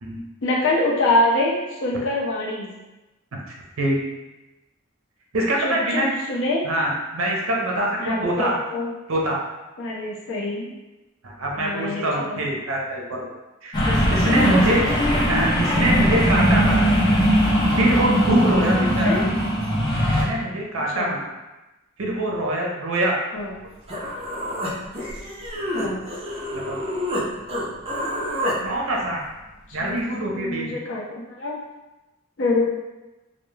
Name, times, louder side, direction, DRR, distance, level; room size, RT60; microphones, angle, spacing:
voice 1, 0.4-2.7 5.6-6.6 8.0-8.9 9.8-10.7 11.6-12.4 13.8-14.3 14.7-14.9 18.7-19.3 20.8-21.1 23.3-23.5 25.7-26.0 29.8-30.0 30.3-31.6 32.4-32.6, left 2 dB, 60° left, -3 dB, 0.5 m, -25 dB
voice 2, 5.3-6.1 6.6-8.6 9.1-9.4 11.2-13.3 13.6-14.9 15.3-16.8 17.7-19.3 20.2-21.2 22.0-23.2 26.5-27.0 28.6-29.2 29.7-30.7, right 1 dB, 80° right, -1 dB, 0.6 m, -24 dB
sound 1, 13.7-20.2, equal, 20° left, 0.6 m, -20 dB
Human voice, 23.5-23.6 23.9-27.2 27.5-28.6, equal, 30° right, 0.5 m, -28 dB
2.2 x 2.1 x 3.1 m, 1.1 s
head